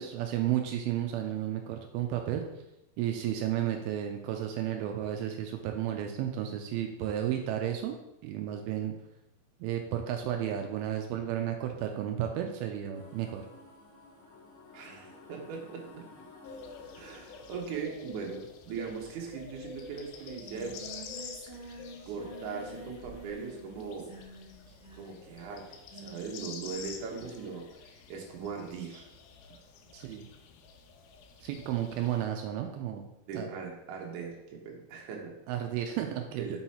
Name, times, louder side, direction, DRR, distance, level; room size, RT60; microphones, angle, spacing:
voice 1, 0.0-2.4 3.0-8.0 8.2-8.9 9.6-13.5 29.9-30.3 31.4-33.0 33.3-33.5 35.5-36.6, right 11 dB, 85° right, 4 dB, 2.4 m, -32 dB
sound 1, 12.9-17.8, left 3 dB, 65° left, 1.4 m, -53 dB
voice 2, 14.7-16.0 16.9-20.7 21.6-21.8 22.1-24.1 24.9-25.6 25.9-27.6 28.1-29.1 33.3-35.3 36.4-36.6, right 5 dB, 65° right, -1 dB, 2.3 m, -39 dB
sound 2, 16.4-32.3, left 6 dB, 85° left, 2.4 m, -48 dB
Singing, 20.0-27.7, right 2 dB, 15° right, 1.2 m, -49 dB
6.3 x 3.0 x 5.5 m, 0.87 s
omnidirectional pair, 4.3 m